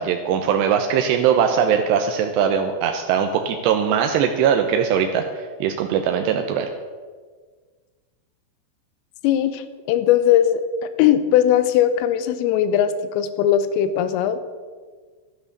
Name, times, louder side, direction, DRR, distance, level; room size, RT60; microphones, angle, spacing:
voice 1, 0.0-6.7, right 8 dB, 80° right, 4 dB, 2.5 m, -20 dB
voice 2, 9.2-10.6 11.0-14.5, left 10 dB, 90° left, 11 dB, 3.5 m, -19 dB
12.5 x 11.0 x 6.6 m, 1.5 s
omnidirectional pair, 5.7 m